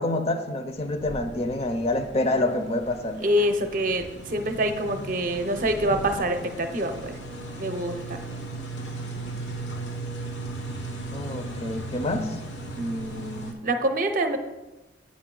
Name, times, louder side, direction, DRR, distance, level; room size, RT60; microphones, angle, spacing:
voice 1, 0.0-3.2 11.1-12.4, left 2 dB, 35° left, 7 dB, 0.6 m, -27 dB
sound 1, 0.7-13.5, right 2 dB, 85° left, 1.0 m, -37 dB
voice 2, 3.2-7.2 7.6-8.2 12.8-14.4, right 1 dB, 50° right, 7 dB, 0.6 m, -26 dB
8.5 x 5.1 x 3.8 m, 1.1 s
head